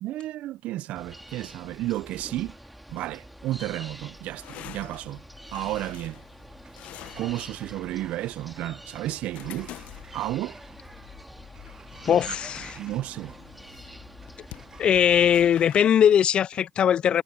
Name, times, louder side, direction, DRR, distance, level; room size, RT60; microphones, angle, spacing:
voice 1, 0.0-2.6 2.9-5.2 5.5-6.2 7.2-9.7 10.1-10.6 12.1-12.3 12.8-13.3, right 15 dB, 60° right, 0.6 m, -32 dB
sound 1, 0.9-15.5, equal, 5° right, 2.5 m, -47 dB
sound 2, 3.1-15.8, left 15 dB, 60° left, 0.9 m, -48 dB
Sliding door, 5.9-16.4, right 5 dB, 25° right, 1.2 m, -53 dB
voice 2, 12.1-12.8 14.8-17.2, left 9 dB, 40° left, 0.4 m, -20 dB
supercardioid pair, 90°, 3 cm